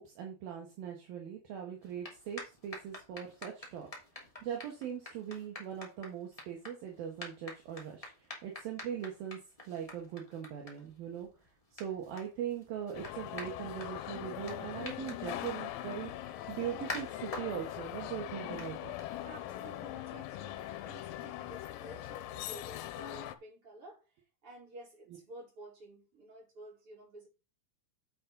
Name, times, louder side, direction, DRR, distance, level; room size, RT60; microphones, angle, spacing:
voice 1, 0.0-3.9 4.4-9.4 9.7-11.3 11.7-18.9, right 9 dB, 65° right, 1 dB, 2.5 m, -41 dB
sound 1, 1.8-19.5, left 1 dB, 40° left, 0.5 m, -49 dB
sound 2, 12.9-23.4, left 13 dB, 90° left, 3.4 m, -41 dB
voice 2, 19.2-24.0 24.4-27.3, right 1 dB, 25° right, -3 dB, 4.8 m, -52 dB
9.3 x 7.6 x 3.9 m, 0.29 s
omnidirectional pair, 6.0 m